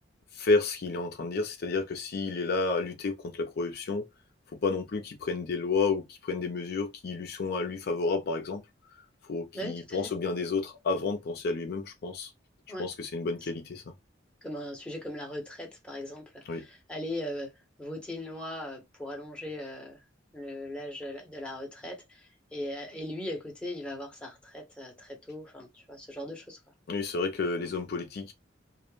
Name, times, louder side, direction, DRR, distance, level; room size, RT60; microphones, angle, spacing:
voice 1, 0.3-4.1 4.6-8.6 9.2-12.3 12.8-13.9 16.5-16.6 26.9-28.3, left 3 dB, 55° left, 0.5 m, -31 dB
voice 2, 9.5-10.0 12.7-12.9 13.4-13.5 14.4-17.5 17.8-20.0 20.3-26.6, left 1 dB, 5° left, 0.7 m, -39 dB
2.3 x 2.1 x 3.0 m
head